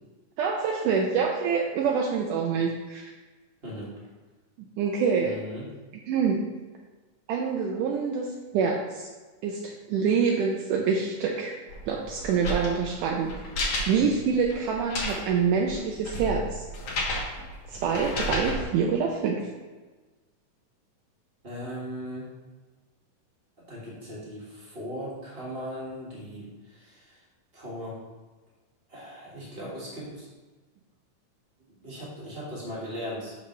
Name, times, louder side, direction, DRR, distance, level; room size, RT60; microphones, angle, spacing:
voice 1, 0.4-3.1 4.8-5.3 6.1-6.4 7.3-8.3 8.5-9.1 9.4-11.6 11.9-13.3 13.9-16.6 17.7-19.4, right 6 dB, 80° right, 0 dB, 2.1 m, -26 dB
voice 2, 3.6-3.9 5.2-5.7 14.1-14.2 21.4-22.3 23.7-27.2 27.5-28.0 28.9-30.3 31.6-33.4, equal, 25° right, -6 dB, 1.3 m, -38 dB
sound 1, 11.7-18.6, left 1 dB, 55° left, 2.2 m, -33 dB
7.0 x 6.3 x 3.2 m, 1.3 s
omnidirectional pair, 3.9 m